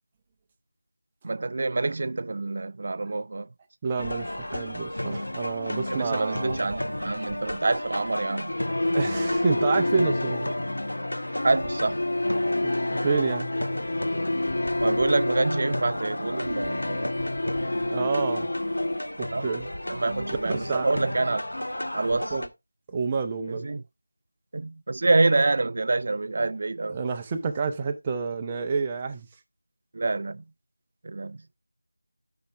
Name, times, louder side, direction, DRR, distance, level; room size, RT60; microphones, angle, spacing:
voice 1, 1.2-3.5 5.9-8.6 11.4-12.0 14.8-17.1 17.4-18.1 19.3-19.5 19.9-21.5 21.9-22.3 23.6-23.8 24.5-27.0 29.9-30.4 31.0-31.4, right 3 dB, 40° right, 0.3 m, -27 dB
voice 2, 3.8-6.7 8.9-10.6 12.6-13.5 17.8-18.5 19.2-19.7 20.3-20.9 21.3-21.4 22.1-22.5 22.9-23.7 26.9-29.3, right 5 dB, 15° right, 0.7 m, -29 dB
sound 1, 4.0-22.5, left 1 dB, 85° left, 1.1 m, -34 dB
sound 2, 8.5-19.0, left 1 dB, 60° left, 0.4 m, -28 dB
11.5 x 5.7 x 2.8 m
figure-of-eight pair, 175°, 0 cm